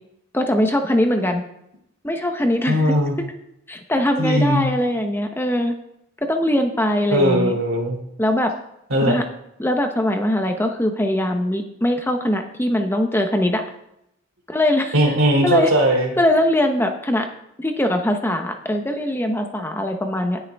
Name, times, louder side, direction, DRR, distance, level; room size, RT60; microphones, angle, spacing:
voice 1, 0.3-1.4 2.0-2.9 3.7-5.7 6.3-7.6 8.2-8.5 9.0-9.2 9.6-13.6 14.5-15.0 15.4-15.7 16.2-17.3 17.6-20.4, left 1 dB, 10° left, 5 dB, 0.8 m, -21 dB
voice 2, 2.7-3.2 4.2-4.7 7.1-8.0 8.9-9.2 14.9-16.1, equal, 85° right, 2 dB, 3.0 m, -19 dB
18.5 x 6.4 x 3.5 m, 0.81 s
head